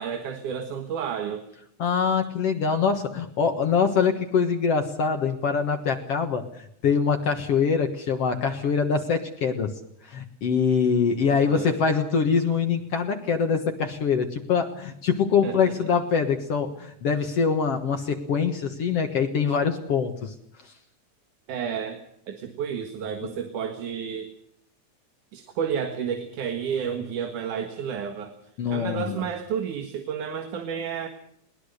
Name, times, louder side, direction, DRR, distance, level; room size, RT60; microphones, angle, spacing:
voice 1, 0.0-1.4 11.3-11.8 15.4-15.9 21.5-22.0 22.3-24.3 25.3-28.3 28.7-31.1, right 7 dB, 90° right, 6 dB, 3.2 m, -31 dB
voice 2, 1.8-9.7 10.0-20.3 28.6-29.2, left 6 dB, 55° left, 5 dB, 2.3 m, -24 dB
21.5 x 19.5 x 6.6 m, 0.74 s
omnidirectional pair, 3.4 m